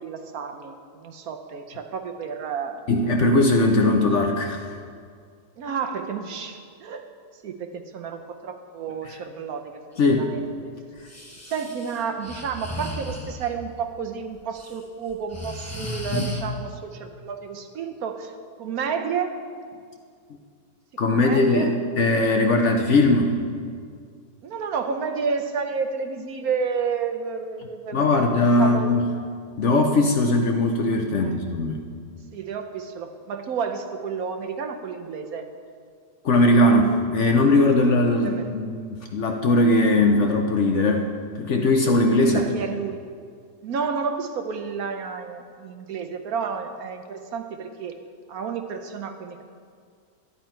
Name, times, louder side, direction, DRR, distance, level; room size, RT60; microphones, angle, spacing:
voice 1, 0.0-2.9 5.6-9.8 10.1-10.7 11.5-19.4 21.1-21.8 24.4-29.0 31.1-31.4 32.3-35.5 38.2-38.5 42.2-43.0 43.6-48.0 48.3-49.4, right 6 dB, 65° right, 6 dB, 1.1 m, -31 dB
voice 2, 2.9-4.6 10.0-10.3 16.1-16.2 21.0-23.4 27.9-29.1 29.6-31.8 36.2-41.1 41.4-42.4, left 2 dB, 55° left, 3 dB, 0.9 m, -20 dB
Breathing, 11.0-13.5 14.4-14.7 15.1-16.4, equal, 10° left, 0.9 m, -34 dB
12.0 x 10.5 x 4.5 m, 2.1 s
omnidirectional pair, 1.8 m